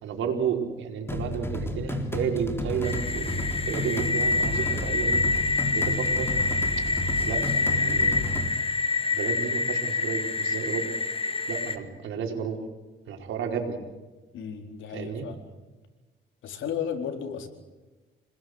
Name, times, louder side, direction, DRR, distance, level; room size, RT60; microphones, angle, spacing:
voice 1, 0.0-5.2 5.7-6.3 7.2-7.4 7.7-8.4 9.1-10.9 11.5-12.6 13.1-13.8 14.9-15.3, right 7 dB, 80° right, 3 dB, 4.8 m, -32 dB
sound 1, 1.1-8.5, left 1 dB, 10° left, 3.9 m, -32 dB
sound 2, 2.8-11.8, left 3 dB, 30° left, 2.3 m, -27 dB
voice 2, 14.3-15.4 16.4-17.5, left 8 dB, 75° left, 5 dB, 4.3 m, -34 dB
27.5 x 20.5 x 8.0 m, 1.2 s
cardioid pair, 90°, 20 cm